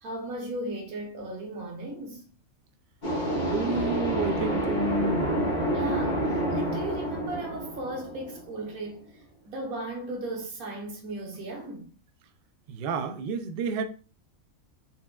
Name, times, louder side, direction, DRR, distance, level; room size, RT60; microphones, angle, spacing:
voice 1, 0.0-2.2 5.7-9.0 9.5-11.9, right 1 dB, 85° right, 1.5 m, -36 dB
sound 1, 3.0-8.7, right 1 dB, 35° left, 1.6 m, -28 dB
voice 2, 3.3-5.5 12.7-13.8, right 3 dB, 70° right, 0.5 m, -30 dB
4.3 x 3.4 x 2.3 m
omnidirectional pair, 1.5 m